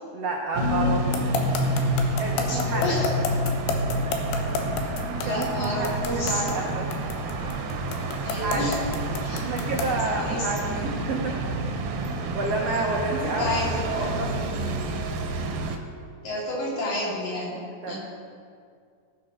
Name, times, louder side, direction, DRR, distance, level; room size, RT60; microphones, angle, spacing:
voice 1, 0.1-1.0 2.2-3.0 5.1-6.9 8.4-8.7 9.3-11.4 12.3-13.6 13.9-14.4 17.8-17.9, right 3 dB, 85° right, -1 dB, 1.4 m, -29 dB
sound 1, 0.6-15.8, right 1 dB, 70° right, 2.2 m, -28 dB
sound 2, 1.1-10.0, left 5 dB, 90° left, 3.1 m, -29 dB
voice 2, 2.5-3.1 5.2-6.4 8.2-8.8 9.2-9.5 10.1-10.5 12.7-12.9 13.2-14.2 16.2-18.0, left 1 dB, 60° left, -6 dB, 4.6 m, -30 dB
18.5 x 6.8 x 5.2 m, 2.2 s
omnidirectional pair, 4.5 m